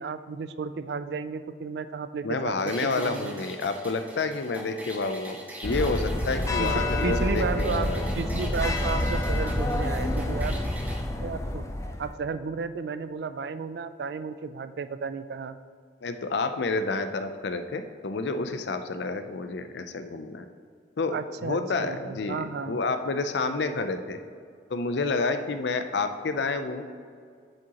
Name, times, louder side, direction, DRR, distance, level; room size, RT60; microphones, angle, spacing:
voice 1, 0.0-2.5 2.8-3.3 6.6-10.6 11.2-11.6 12.0-15.6 21.1-22.8, right 5 dB, 60° right, 12 dB, 0.3 m, -33 dB
voice 2, 2.2-8.1 16.0-20.5 21.0-24.2 24.7-26.8, left 3 dB, 70° left, 8 dB, 0.5 m, -29 dB
sound 1, 2.6-11.0, right 1 dB, 10° right, 0.8 m, -43 dB
sound 2, 5.6-12.1, left 1 dB, 15° left, 0.4 m, -28 dB
7.6 x 7.5 x 2.9 m, 2.2 s
head